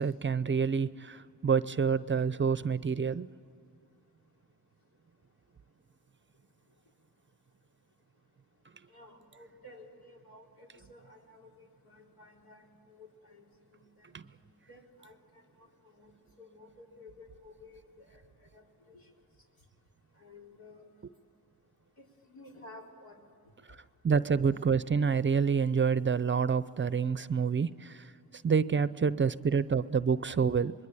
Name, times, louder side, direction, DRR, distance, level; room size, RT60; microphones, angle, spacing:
voice 1, 0.0-3.3 14.1-14.2 23.7-23.8 24.0-28.1 28.4-30.7, right 6 dB, 35° right, 16 dB, 0.6 m, -28 dB
voice 2, 8.9-13.4 13.7-14.2 14.7-16.1 16.4-18.2 18.5-19.1 20.2-21.0 22.0-23.2, left 2 dB, 75° left, 0 dB, 4.0 m, -54 dB
25.5 x 21.5 x 9.0 m, 2.4 s
cardioid pair, 80°, 36 cm